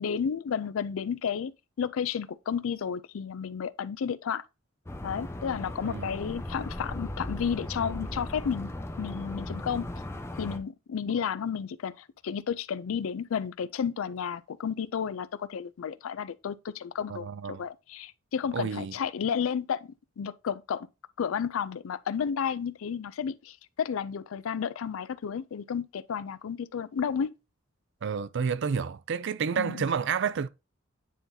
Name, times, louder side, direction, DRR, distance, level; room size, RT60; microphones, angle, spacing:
voice 1, 0.0-1.5 1.8-4.5 5.0-8.7 9.0-9.9 10.4-20.9 21.2-27.3 29.6-29.9, left 7 dB, 85° left, 0.4 m, -32 dB
sound 1, 4.9-10.6, left 1 dB, 15° left, 0.6 m, -37 dB
voice 2, 17.1-17.6 18.5-18.9 28.0-30.5, right 6 dB, 60° right, 0.4 m, -30 dB
9.3 x 3.9 x 2.7 m
head